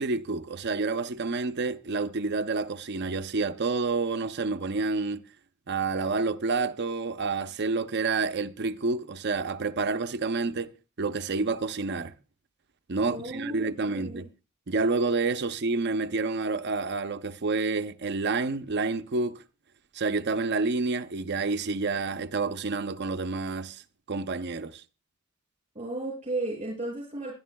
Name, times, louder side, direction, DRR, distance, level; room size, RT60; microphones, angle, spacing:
voice 1, 0.0-5.2 5.7-10.7 11.0-12.1 12.9-14.3 14.7-19.4 19.9-23.8 24.1-24.8, right 3 dB, 55° right, 0.7 m, -29 dB
voice 2, 13.0-14.3 25.7-27.4, right 2 dB, 30° right, 5.8 m, -34 dB
23.0 x 11.0 x 2.2 m
head